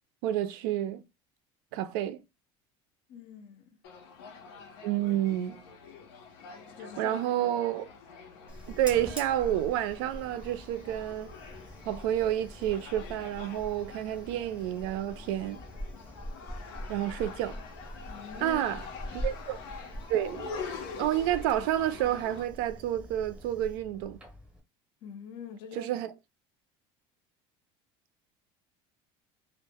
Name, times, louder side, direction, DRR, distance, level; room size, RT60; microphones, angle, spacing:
voice 1, 0.2-1.0 1.7-2.2 4.8-5.6 7.0-7.8 8.7-11.3 11.9-15.6 16.9-17.6 18.4-18.8 19.1-19.6 20.1-20.5 21.0-24.2 25.7-26.1, right 12 dB, 70° right, 0.4 m, -29 dB
voice 2, 3.1-3.8 6.7-7.2 18.1-18.6 19.1-19.2 25.0-25.9, left 7 dB, 45° left, 0.4 m, -45 dB
sound 1, 3.8-22.4, left 5 dB, 85° left, 0.7 m, -46 dB
Fire, 8.5-24.6, equal, 10° right, 0.7 m, -44 dB
2.1 x 2.0 x 3.4 m
cardioid pair, 170°, 12 cm